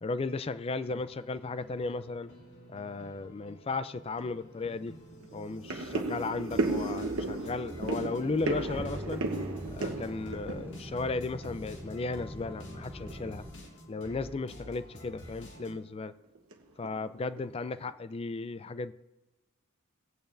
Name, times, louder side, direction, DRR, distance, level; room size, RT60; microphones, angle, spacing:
voice 1, 0.0-2.3 2.7-5.0 5.3-9.2 9.7-13.5 13.9-16.1 16.8-18.9, left 3 dB, 25° left, 0.3 m, -35 dB
sound 1, 0.6-15.8, left 1 dB, 55° left, 2.3 m, -50 dB
sound 2, 4.2-4.3 4.7-4.8 5.2-11.8 12.0-12.6 13.0-13.2 13.5-13.6 14.1-14.3 14.6-14.8 15.3-15.8 16.4-16.5 16.8-17.5 17.9-18.0, right 2 dB, 90° right, 1.0 m, -34 dB
sound 3, 7.9-13.5, equal, 10° right, 0.8 m, -43 dB
20.5 x 8.7 x 2.6 m
head